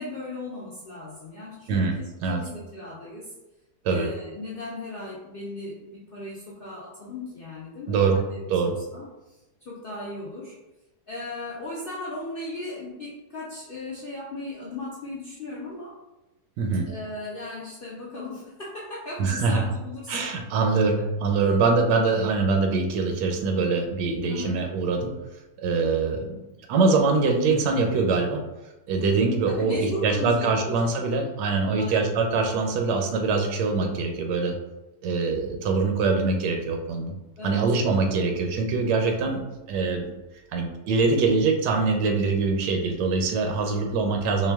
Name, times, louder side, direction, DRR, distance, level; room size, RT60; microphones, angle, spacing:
voice 1, 0.0-2.0 2.3-3.3 3.9-10.6 11.1-16.0 16.9-21.1 21.5-21.7 24.2-24.7 29.5-31.0 31.7-32.1 37.4-37.7, left 2 dB, 75° left, -6 dB, 0.5 m, -37 dB
voice 2, 1.7-2.4 3.8-4.1 7.9-8.2 8.5-8.8 16.6-16.9 19.2-19.6 20.1-25.1 25.6-26.4 26.7-28.4 28.9-34.6 35.0-37.1 37.4-39.4 39.7-40.1 40.5-44.5, right 4 dB, 85° right, 3 dB, 1.3 m, -23 dB
4.4 x 2.2 x 3.4 m, 1.0 s
omnidirectional pair, 1.8 m